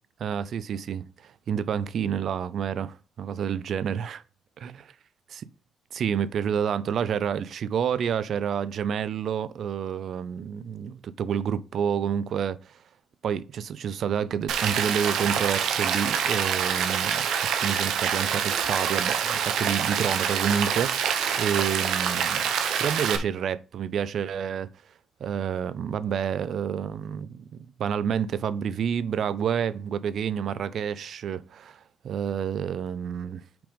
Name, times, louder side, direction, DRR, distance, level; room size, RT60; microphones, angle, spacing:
voice 1, 0.2-4.2 4.6-4.8 5.3-5.4 5.9-12.8 13.2-17.3 17.6-22.5 22.8-24.7 25.2-27.4 27.8-31.8 32.0-33.4, right 8 dB, 65° right, 0.6 m, -29 dB
Rain, 14.5-23.2, right 8 dB, 80° right, 1.1 m, -26 dB
6.0 x 5.2 x 5.2 m
cardioid pair, 90°, 0 cm